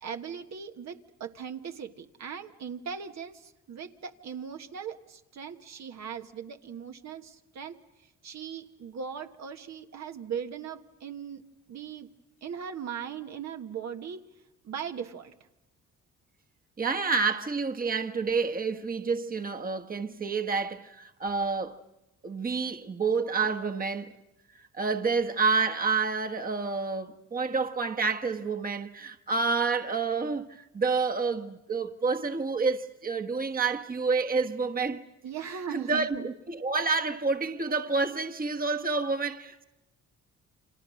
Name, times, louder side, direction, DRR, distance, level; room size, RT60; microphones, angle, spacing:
voice 1, 0.0-7.8 8.2-11.4 11.7-12.1 12.4-14.3 14.6-15.3 35.2-36.3, right 7 dB, 65° right, 1.6 m, -39 dB
voice 2, 16.8-21.8 22.2-24.1 24.7-35.0 35.7-39.6, right 4 dB, 30° right, 1.4 m, -29 dB
30.0 x 26.0 x 6.4 m
cardioid pair, 90°, 30 cm